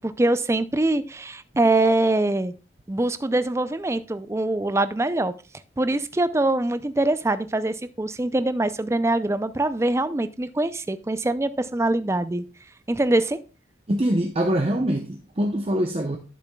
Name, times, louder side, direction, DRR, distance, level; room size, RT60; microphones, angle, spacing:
voice 1, 0.0-2.5 2.9-5.4 5.8-12.4 12.9-13.4, right 2 dB, 15° right, 0.4 m, -23 dB
voice 2, 13.9-16.2, right 1 dB, 35° right, 0.8 m, -24 dB
11.5 x 6.9 x 2.3 m
head